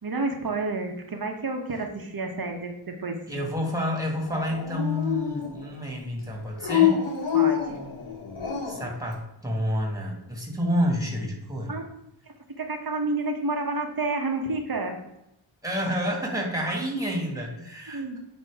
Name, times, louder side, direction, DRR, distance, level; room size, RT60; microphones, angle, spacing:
voice 1, 0.0-3.2 7.3-7.8 11.7-11.9 12.3-15.0 16.7-16.8 17.9-18.2, right 3 dB, 45° right, 4 dB, 1.1 m, -30 dB
voice 2, 3.3-7.0 8.6-11.8 15.6-18.2, equal, 5° right, -1 dB, 1.8 m, -29 dB
Dog, 4.3-5.8 6.6-8.9, left 9 dB, 85° left, 1.2 m, -26 dB
9.0 x 3.0 x 4.7 m, 0.85 s
wide cardioid pair, 90°, 48 cm